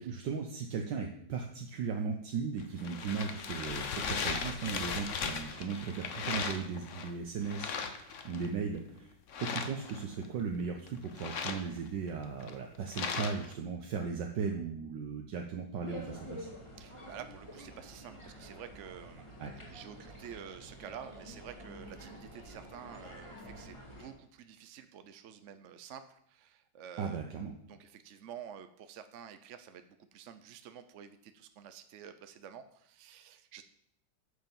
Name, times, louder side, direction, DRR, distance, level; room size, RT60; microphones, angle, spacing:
voice 1, 0.0-16.5 19.4-19.6 27.0-27.5, right 5 dB, 75° right, 2 dB, 1.6 m, -37 dB
sound 1, 2.6-7.1 7.4-8.5 9.3-10.3 10.9-13.5, left 6 dB, 50° left, 1.1 m, -37 dB
sound 2, 15.8-24.1, equal, 15° left, 2.4 m, -48 dB
voice 2, 16.8-19.4 19.7-27.2 27.7-33.6, right 8 dB, 60° right, 10 dB, 0.8 m, -49 dB
9.8 x 6.6 x 7.2 m, 0.69 s
omnidirectional pair, 2.0 m